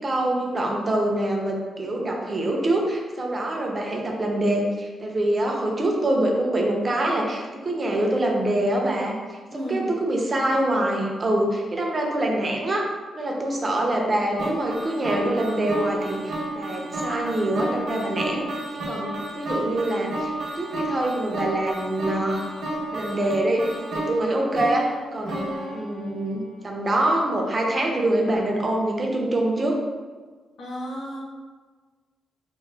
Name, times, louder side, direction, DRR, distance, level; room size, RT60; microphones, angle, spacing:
voice 1, 0.0-9.2 9.5-12.9 13.1-18.4 18.7-20.3 20.6-22.5 22.9-24.9 25.1-25.4 25.7-29.8, right 1 dB, 25° right, 0 dB, 0.4 m, -25 dB
voice 2, 9.5-9.9 30.6-31.2, equal, 60° left, -5 dB, 0.8 m, -32 dB
sound 1, 14.4-26.6, right 1 dB, 70° right, 0.7 m, -32 dB
2.9 x 2.0 x 3.2 m, 1.4 s
cardioid pair, 150°, 0 cm